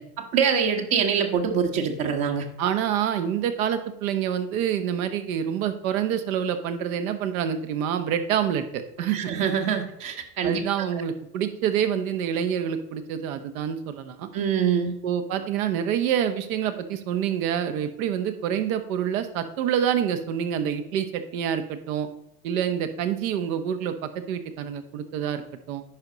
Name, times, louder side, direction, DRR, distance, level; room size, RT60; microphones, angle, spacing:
voice 1, 0.2-2.4 9.1-10.6 14.3-14.9, right 7 dB, 50° right, 3 dB, 1.6 m, -24 dB
voice 2, 2.6-9.3 10.4-14.3 15.0-22.1 22.4-25.8, right 9 dB, 65° right, 8 dB, 1.2 m, -27 dB
10.5 x 5.0 x 4.0 m, 0.81 s
hypercardioid pair, 90°, 44 cm